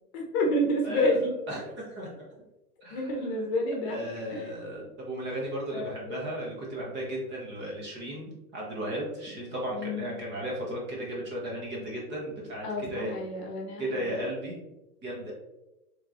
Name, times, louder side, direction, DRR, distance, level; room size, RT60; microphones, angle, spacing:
voice 1, 0.1-1.3 2.9-4.0 4.3-4.5 5.7-6.3 9.7-10.1 12.6-14.2, left 1 dB, 40° left, 0 dB, 1.0 m, -29 dB
voice 2, 1.5-2.4 2.8-3.0 3.9-13.2 13.8-14.6 15.0-15.3, right 1 dB, 25° right, -3 dB, 1.0 m, -35 dB
4.3 x 3.2 x 2.4 m, 0.97 s
hypercardioid pair, 140°, 46 cm